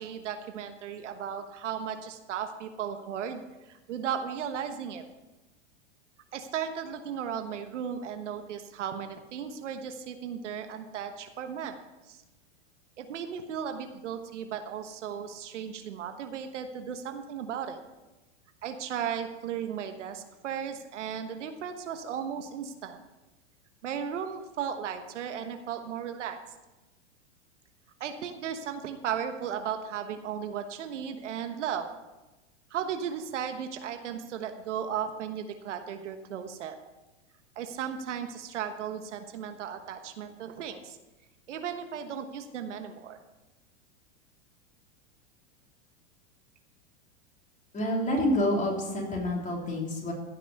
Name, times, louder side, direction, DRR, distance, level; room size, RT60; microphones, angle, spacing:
voice 1, 0.0-3.4 3.7-5.0 6.3-11.8 12.1-12.2 13.0-17.8 18.6-23.0 23.8-26.4 28.0-31.9 32.7-36.7 37.6-41.0 41.5-43.2, right 8 dB, 85° right, 7 dB, 1.3 m, -35 dB
voice 2, 47.7-50.1, left 1 dB, 20° left, -1 dB, 3.5 m, -28 dB
15.5 x 6.1 x 6.9 m, 1.1 s
hypercardioid pair, 120°, 35 cm